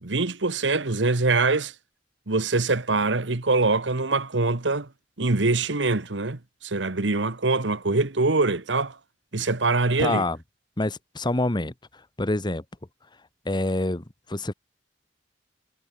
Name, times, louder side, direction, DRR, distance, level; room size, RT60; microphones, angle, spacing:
voice 1, 0.0-1.7 2.3-4.9 5.2-8.9 9.3-10.2, right 3 dB, 85° right, 1.4 m, -24 dB
voice 2, 10.0-10.4 10.8-11.7 12.2-12.6 13.4-14.5, left 2 dB, 25° left, 1.2 m, -26 dB
head